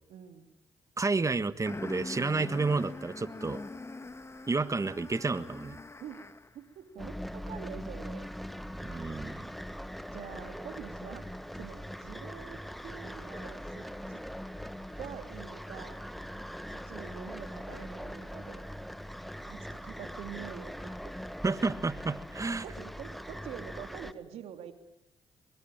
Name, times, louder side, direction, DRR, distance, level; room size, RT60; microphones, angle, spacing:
voice 1, 0.1-0.5 6.0-6.2 6.5-8.2 10.1-11.3 11.6-14.2 15.0-16.0 16.7-18.6 19.5-21.2 21.5-21.6 22.4-24.7, right 9 dB, 80° right, 8 dB, 2.8 m, -46 dB
voice 2, 1.0-3.6 4.5-5.8 8.8-9.5 21.4-22.6, right 3 dB, 30° right, 14 dB, 1.6 m, -30 dB
sound 1, 1.7-6.6, left 3 dB, 25° left, 1.8 m, -43 dB
sound 2, 7.0-24.1, equal, ahead, 1.5 m, -41 dB
23.5 x 22.0 x 9.0 m, 0.86 s
supercardioid pair, 55°, 11 cm